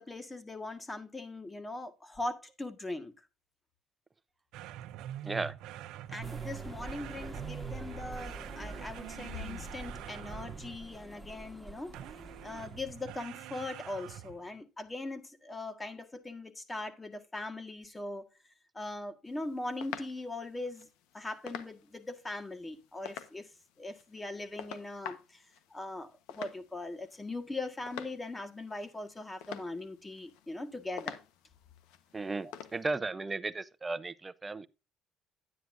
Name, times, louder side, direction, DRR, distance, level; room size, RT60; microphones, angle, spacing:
voice 1, 0.0-3.1 6.1-11.9 12.4-18.3 18.7-20.9 21.1-23.5 23.8-25.4 25.7-31.2 32.4-32.5, left 2 dB, 20° left, 1.6 m, -40 dB
sound 1, 4.5-11.0 11.9-14.5, right 12 dB, 80° right, 0.6 m, -45 dB
voice 2, 5.2-5.6 32.1-34.7, right 3 dB, 25° right, 0.7 m, -35 dB
sound 2, 6.2-13.2, right 2 dB, ahead, 1.4 m, -46 dB
sound 3, 19.3-32.9, left 10 dB, 90° left, 1.1 m, -48 dB
10.0 x 9.4 x 2.6 m
cardioid pair, 90°, 0 cm